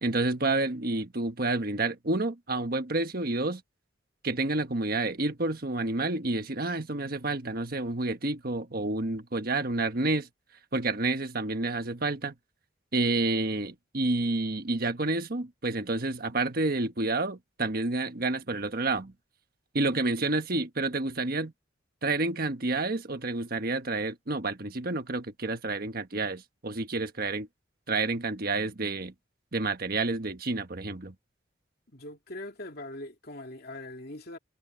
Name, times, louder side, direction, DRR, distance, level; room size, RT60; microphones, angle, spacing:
voice 1, 0.0-3.6 4.2-10.3 10.7-12.3 12.9-19.1 19.7-21.5 22.0-27.5 27.9-29.1 29.5-31.1, right 2 dB, 50° right, 1.4 m, -29 dB
voice 2, 31.9-34.4, left 1 dB, 55° left, 2.7 m, -41 dB
head